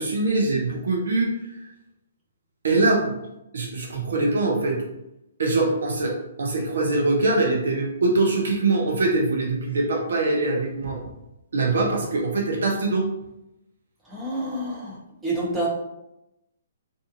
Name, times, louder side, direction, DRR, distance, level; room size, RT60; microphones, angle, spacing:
voice 1, 0.0-1.3 2.6-3.1 3.5-4.8 5.4-11.0 11.5-13.1, right 2 dB, 65° right, 0 dB, 0.6 m, -23 dB
voice 2, 14.1-15.0 15.2-15.7, right 1 dB, 10° right, -6 dB, 0.9 m, -27 dB
2.6 x 2.4 x 2.6 m, 0.88 s
figure-of-eight pair, 125°, 0 cm